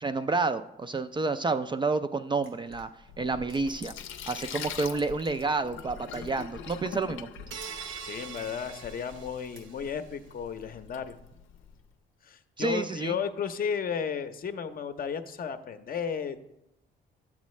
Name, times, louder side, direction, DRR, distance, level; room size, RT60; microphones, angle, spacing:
voice 1, 0.0-2.9 3.2-3.9 4.3-7.3 12.6-13.2, right 3 dB, 25° right, 10 dB, 0.3 m, -29 dB
sound 1, 2.4-5.5 5.8-8.6 9.0-10.1, equal, 90° right, 2.5 m, -52 dB
Sink (filling or washing), 3.0-11.8, left 8 dB, 80° left, 0.6 m, -44 dB
sound 2, 7.5-10.0, right 7 dB, 75° right, 0.6 m, -43 dB
voice 2, 7.7-11.2 12.2-16.4, left 7 dB, 45° left, 9 dB, 0.7 m, -34 dB
9.4 x 7.2 x 3.1 m, 0.86 s
cardioid pair, 90°, 20 cm